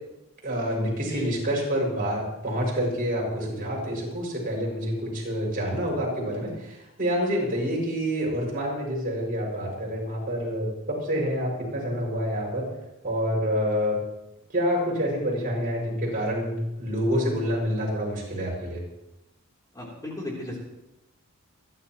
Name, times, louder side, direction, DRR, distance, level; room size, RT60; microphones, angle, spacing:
voice 1, 0.4-12.7 13.0-14.0 14.5-18.8, equal, 40° right, -3 dB, 6.5 m, -27 dB
voice 2, 19.7-20.6, left 1 dB, 20° left, -3 dB, 3.4 m, -35 dB
29.0 x 11.5 x 3.1 m, 0.89 s
head